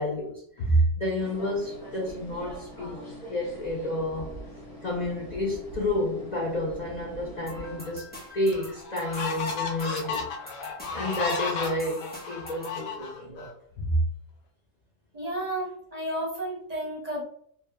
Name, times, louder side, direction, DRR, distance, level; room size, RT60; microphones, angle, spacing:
voice 1, 0.0-3.0 3.3-4.3 4.8-10.3 10.9-14.0, equal, 65° left, 0.4 m, -29 dB
sound 1, 1.2-7.9, right 1 dB, 30° left, 1.2 m, -43 dB
sound 2, 7.5-12.8, left 1 dB, 10° left, 0.6 m, -45 dB
sound 3, 7.9-8.0 8.5-13.5, left 4 dB, 85° left, 1.0 m, -33 dB
voice 2, 15.1-17.2, right 1 dB, 40° right, 0.6 m, -32 dB
3.1 x 2.1 x 2.2 m
omnidirectional pair, 1.4 m